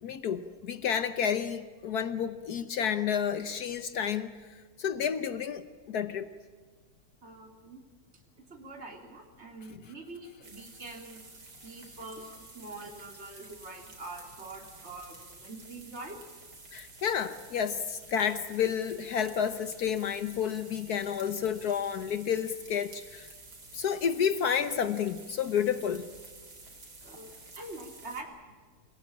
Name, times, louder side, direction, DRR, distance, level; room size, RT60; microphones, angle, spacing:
voice 1, 0.0-4.3 4.8-6.3 16.7-23.3 23.7-26.1, left 8 dB, 70° left, 1.4 m, -30 dB
voice 2, 7.2-7.8 8.1-8.2 8.5-11.2 11.6-16.2 27.0-28.3, right 2 dB, 40° right, 3.6 m, -45 dB
sound 1, 10.4-28.2, right 3 dB, 80° right, 4.5 m, -51 dB
28.5 x 18.5 x 8.6 m
omnidirectional pair, 1.7 m